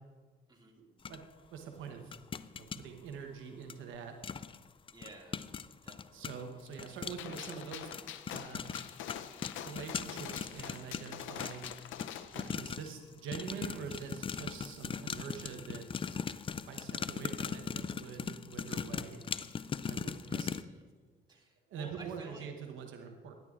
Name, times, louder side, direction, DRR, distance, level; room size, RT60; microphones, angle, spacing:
voice 1, 0.8-1.2 1.5-2.1 2.5-4.2 6.1-7.9 8.3-8.6 9.6-11.8 12.3-16.2 16.6-19.3 19.9-20.6 21.7-23.3, right 6 dB, 85° right, 4 dB, 1.0 m, -45 dB
sound 1, 1.1-1.2 2.1-2.8 3.7-3.8 4.2-4.6 4.9-13.0 13.3-20.6, left 6 dB, 25° left, 0.3 m, -39 dB
voice 2, 4.9-5.5 5.8-6.4 12.4-12.6 20.2-20.9 21.3-22.5, right 2 dB, 20° right, 0 dB, 2.2 m, -54 dB
Gunshot gunfire, 7.2-12.6, left 10 dB, 80° left, 0.6 m, -45 dB
sound 2, 13.5-14.6, right 6 dB, 50° right, 0.9 m, -56 dB
16.5 x 11.0 x 2.5 m, 1.4 s
cardioid pair, 90°, 20 cm